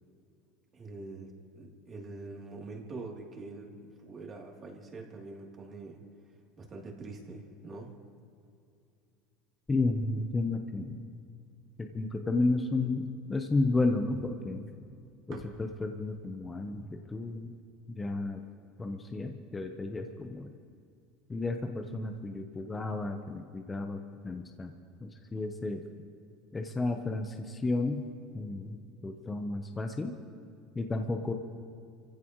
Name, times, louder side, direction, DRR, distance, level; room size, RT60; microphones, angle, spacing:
voice 1, 0.7-6.0 6.6-7.9, right 3 dB, 30° right, -1 dB, 3.1 m, -44 dB
voice 2, 9.7-11.0 11.8-14.7 15.3-17.5 17.9-18.4 18.8-20.5 21.3-24.0 24.2-24.7 25.0-25.8 26.5-28.1 28.3-30.1 30.7-31.3, left 2 dB, 20° left, 4 dB, 1.0 m, -32 dB
sound 1, 14.2-18.5, right 5 dB, 60° right, 2.5 m, -54 dB
26.5 x 15.5 x 3.2 m, 2.4 s
supercardioid pair, 110°, 0 cm